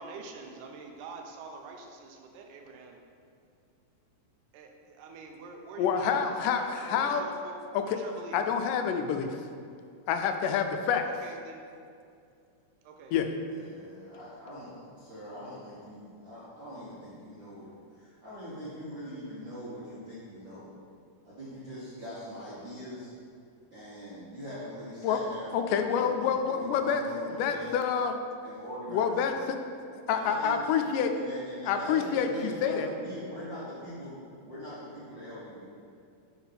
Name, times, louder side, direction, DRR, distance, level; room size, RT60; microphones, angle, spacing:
voice 1, 0.0-3.0 4.5-4.7 5.0-6.2 6.6-7.6 7.9-8.4 11.2-11.6 12.9-13.1, right 4 dB, 85° right, 3 dB, 2.2 m, -45 dB
voice 2, 5.8-7.3 7.7-8.0 8.3-9.4 10.1-11.1 13.1-13.3 25.0-25.2 25.5-27.0 27.4-28.2 28.9-29.6 30.1-31.1 31.7-32.9, left 7 dB, 85° left, 6 dB, 2.1 m, -27 dB
voice 3, 13.5-17.7 17.9-20.6 21.2-23.1 23.7-27.7 28.4-29.1 30.1-30.6 31.1-34.2 34.4-35.7, equal, 60° right, -10 dB, 1.2 m, -42 dB
6.2 x 4.0 x 5.6 m, 2.4 s
omnidirectional pair, 3.7 m